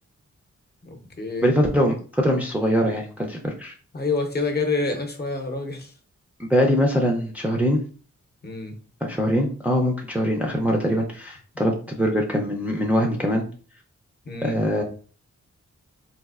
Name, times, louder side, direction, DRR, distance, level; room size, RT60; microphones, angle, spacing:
voice 1, 0.8-1.5 3.9-5.9 8.4-8.7 14.3-14.6, left 3 dB, 35° left, 3 dB, 0.7 m, -27 dB
voice 2, 1.4-3.7 6.4-7.8 9.0-13.4 14.4-14.8, equal, 5° right, 0 dB, 0.4 m, -22 dB
4.1 x 2.5 x 2.4 m, 0.40 s
wide cardioid pair, 120°, 29 cm